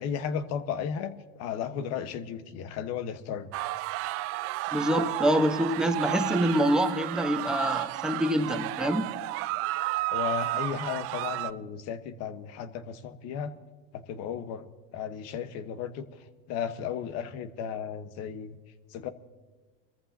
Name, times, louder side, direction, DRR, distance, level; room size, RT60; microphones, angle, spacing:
voice 1, 0.0-3.5 10.1-13.5 13.9-14.7 14.9-18.6 18.9-19.1, left 7 dB, 55° left, 11 dB, 1.2 m, -34 dB
sound 1, 3.5-11.5, right 18 dB, 50° right, 0.5 m, -32 dB
voice 2, 4.7-9.1, equal, ahead, 6 dB, 1.1 m, -26 dB
24.0 x 14.5 x 2.8 m, 1.4 s
supercardioid pair, 125°, 30 cm